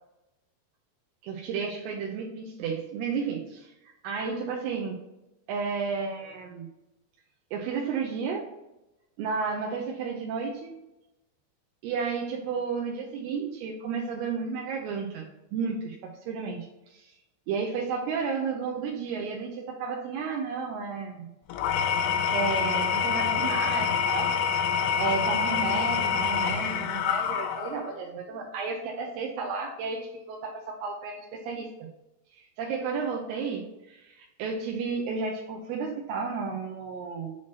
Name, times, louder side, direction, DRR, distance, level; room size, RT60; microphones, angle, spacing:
voice 1, 1.2-3.7 4.0-5.0 5.5-6.7 7.5-8.5 9.2-10.8 11.8-17.1 17.5-21.3 22.3-24.4 25.0-31.9 32.3-37.4, right 5 dB, 85° right, 0 dB, 2.4 m, -32 dB
Engine / Tools, 21.5-27.9, left 7 dB, 90° left, 2.8 m, -26 dB
7.2 x 3.0 x 4.5 m, 0.94 s
omnidirectional pair, 5.1 m